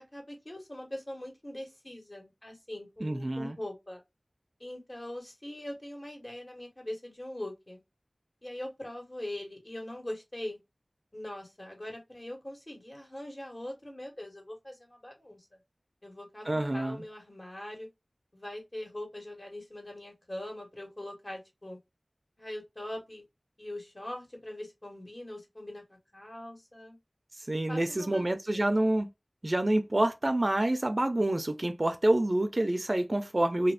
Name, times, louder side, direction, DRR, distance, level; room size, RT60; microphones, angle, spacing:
voice 1, 0.1-4.0 4.6-7.8 8.4-10.6 11.1-15.4 16.0-17.9 18.3-21.8 22.4-23.2 23.6-27.0 27.7-28.7, left 1 dB, 40° left, 1.4 m, -42 dB
voice 2, 3.0-3.6 16.5-17.0 27.5-29.1 29.4-33.7, right 1 dB, 45° right, 0.4 m, -27 dB
2.7 x 2.4 x 3.3 m
wide cardioid pair, 50°, 0 cm